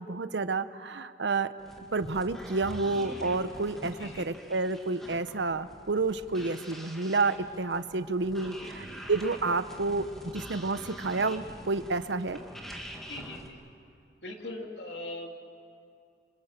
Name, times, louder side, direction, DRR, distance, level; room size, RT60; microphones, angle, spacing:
voice 1, 0.0-1.5 1.9-12.4, right 3 dB, 75° right, 13 dB, 0.9 m, -30 dB
sound 1, 1.6-13.5, equal, ahead, 2.3 m, -46 dB
sound 2, 2.0-4.4 5.1-5.2 5.8-5.9, equal, 40° left, 4.7 m, -47 dB
voice 2, 13.1-13.6 14.2-15.4, left 1 dB, 70° left, 2 dB, 3.0 m, -41 dB
27.5 x 27.0 x 7.5 m, 2.4 s
head